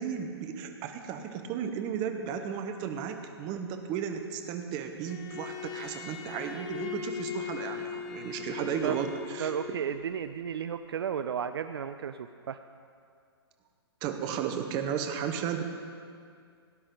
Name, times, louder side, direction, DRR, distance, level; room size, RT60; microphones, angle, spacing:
voice 1, 0.0-9.5 14.0-15.6, right 8 dB, 30° right, 6 dB, 1.1 m, -34 dB
Bowed string instrument, 5.1-9.9, left 8 dB, 30° left, 1.0 m, -39 dB
voice 2, 9.4-12.6, right 8 dB, 65° right, 10 dB, 0.5 m, -33 dB
17.5 x 10.0 x 3.9 m, 2.3 s
hypercardioid pair, 125°, 14 cm